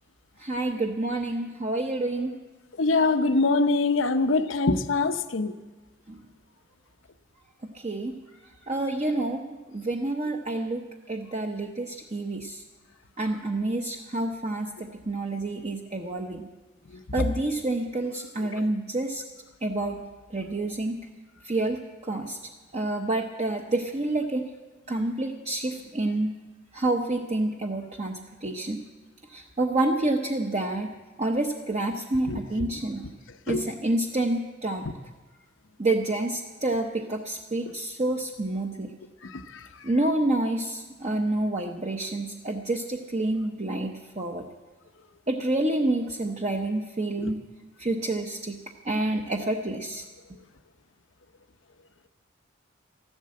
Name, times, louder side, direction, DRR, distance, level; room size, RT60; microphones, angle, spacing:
voice 1, 0.4-2.3 6.1-6.2 7.6-8.1 8.7-9.5 9.7-12.6 13.2-16.5 17.1-19.2 19.6-20.0 20.3-20.9 21.4-22.4 22.7-24.4 24.9-26.3 26.7-28.8 29.3-30.9 31.2-33.1 33.5-34.8 35.8-38.9 39.8-44.5 45.3-47.4 47.8-48.6 48.8-50.1, right 2 dB, 35° right, 0.8 m, -28 dB
voice 2, 2.8-5.5 32.3-32.4 33.5-33.6 47.2-47.3, left 3 dB, 85° left, 0.8 m, -23 dB
14.0 x 12.0 x 7.6 m
head